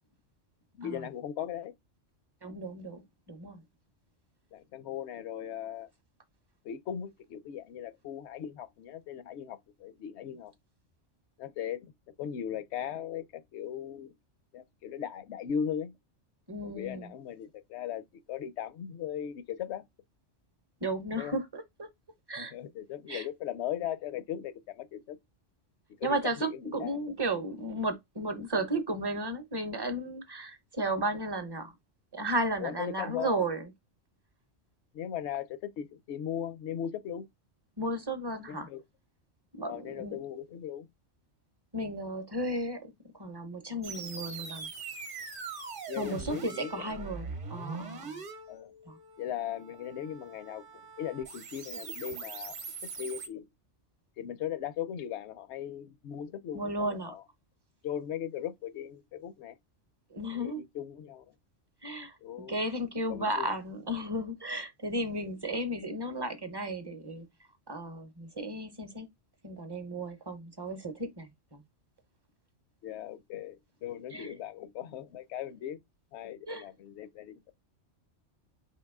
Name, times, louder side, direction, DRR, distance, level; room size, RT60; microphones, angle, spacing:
voice 1, 0.8-1.7 4.5-5.9 6.6-10.5 11.4-11.9 12.2-14.1 14.5-15.9 16.6-19.8 21.2-21.4 22.4-25.2 26.0-27.0 32.6-33.4 34.9-37.3 38.5-38.8 39.6-40.9 45.9-47.0 48.5-48.7 49.2-53.5 54.2-57.2 57.8-59.6 60.3-61.3 62.2-62.6 63.1-63.5 72.8-75.8 76.1-77.5, left 9 dB, 70° left, 0.8 m, -38 dB
voice 2, 2.4-3.6 16.5-17.1 20.8-21.9 22.3-22.5 23.1-23.3 26.0-31.7 32.1-33.7 37.8-38.7 39.6-40.2 41.7-44.7 46.0-48.2 48.9-49.0 56.5-57.1 60.1-60.6 61.8-62.2 62.5-67.3 67.7-69.1 69.4-71.6 74.1-74.4 76.5-76.6, right 1 dB, 25° right, 0.6 m, -34 dB
sound 1, 43.8-53.3, right 4 dB, 50° right, 0.9 m, -42 dB
4.6 x 2.8 x 3.5 m
omnidirectional pair, 1.2 m